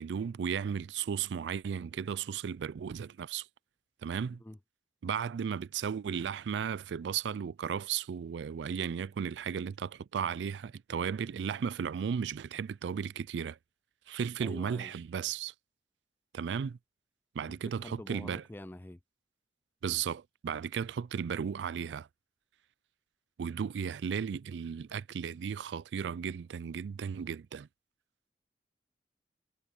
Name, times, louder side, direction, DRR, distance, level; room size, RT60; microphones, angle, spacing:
voice 1, 0.0-3.5 4.0-4.4 5.0-13.6 14.1-15.5 16.3-16.8 17.3-18.4 19.8-22.1 23.4-27.7, right 7 dB, 90° right, 0.4 m, -35 dB
voice 2, 14.4-14.9 17.6-19.0, left 1 dB, 10° left, 0.4 m, -46 dB
head